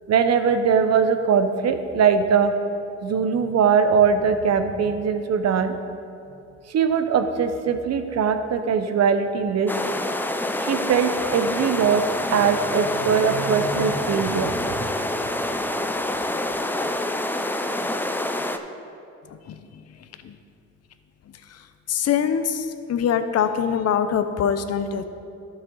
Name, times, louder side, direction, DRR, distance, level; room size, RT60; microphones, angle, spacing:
voice 1, 0.1-2.5 3.0-5.7 6.7-9.7 10.6-12.0 12.3-14.9, right 6 dB, 60° right, 8 dB, 0.8 m, -21 dB
sound 1, 9.7-18.6, left 1 dB, 5° left, 0.5 m, -27 dB
voice 2, 21.9-25.1, left 8 dB, 55° left, 10 dB, 0.7 m, -23 dB
12.0 x 6.5 x 3.9 m, 2.7 s
cardioid pair, 90°, 30 cm